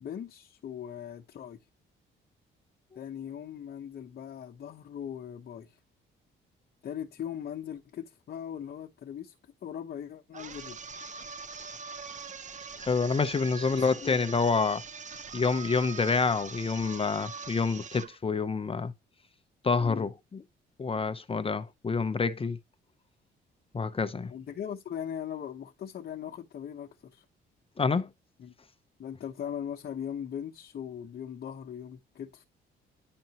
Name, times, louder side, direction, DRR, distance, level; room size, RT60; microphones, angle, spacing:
voice 1, 0.0-1.6 3.0-5.8 6.8-9.3 9.6-10.8 13.5-14.2 19.8-20.1 24.3-27.2 28.4-28.5 29.0-32.4, left 9 dB, 55° left, 1.0 m, -39 dB
sound 1, 10.3-18.2, right 5 dB, 40° right, 0.9 m, -43 dB
voice 2, 12.8-14.8 15.3-18.9 19.6-20.4 20.8-22.6 23.7-24.3 27.8-28.1, left 4 dB, 30° left, 0.7 m, -27 dB
10.5 x 4.3 x 2.9 m
cardioid pair, 90°, 20 cm